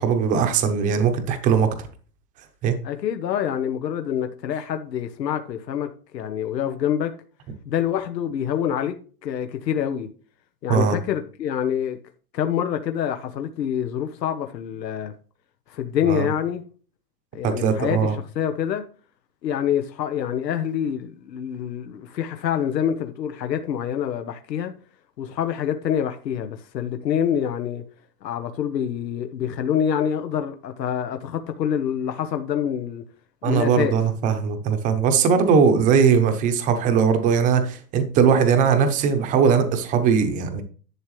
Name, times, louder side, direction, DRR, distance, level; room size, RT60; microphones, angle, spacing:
voice 1, 0.0-1.9 2.6-2.7 10.7-11.0 16.1-16.3 17.4-18.2 33.4-40.6, right 6 dB, 15° right, 0.9 m, -20 dB
voice 2, 2.8-7.1 7.7-9.0 9.2-10.1 10.6-12.0 12.3-15.1 15.7-16.6 17.3-18.1 18.3-18.8 19.4-24.7 25.2-27.8 28.2-33.0 33.4-33.9, left 9 dB, 85° left, 1.3 m, -26 dB
11.0 x 7.8 x 3.2 m
hypercardioid pair, 160°, 48 cm